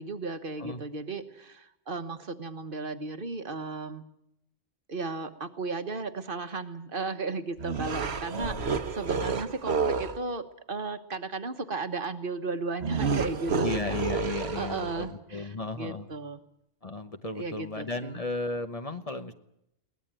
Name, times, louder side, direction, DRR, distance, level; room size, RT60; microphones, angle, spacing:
voice 1, 0.0-4.0 4.9-16.4 17.3-18.2, right 3 dB, 50° right, 8 dB, 1.4 m, -35 dB
sound 1, 7.6-10.2 12.8-15.1, right 5 dB, 65° right, 1.4 m, -30 dB
voice 2, 13.6-16.1 16.8-19.3, left 2 dB, 35° left, 7 dB, 1.0 m, -34 dB
22.5 x 18.5 x 9.0 m, 0.78 s
omnidirectional pair, 1.2 m